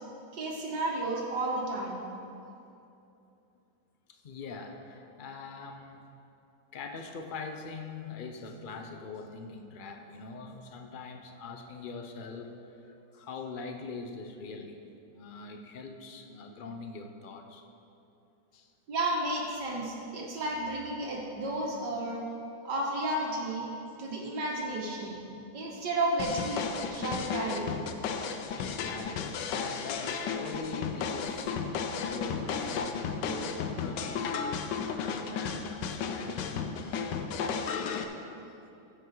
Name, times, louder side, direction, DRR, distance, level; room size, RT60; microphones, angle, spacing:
voice 1, 0.3-2.0 18.9-22.2 22.6-23.7 24.0-25.2 25.5-27.8, right 1 dB, 80° right, -2 dB, 2.2 m, -32 dB
voice 2, 4.1-6.0 6.7-14.8 15.1-17.6 18.5-18.7 24.1-24.3 28.6-31.6 32.0-37.8 38.1-38.4, left 4 dB, 45° left, 5 dB, 0.6 m, -43 dB
sound 1, 26.2-38.0, left 6 dB, 90° left, 1.3 m, -34 dB
15.0 x 8.3 x 3.9 m, 2.8 s
omnidirectional pair, 1.8 m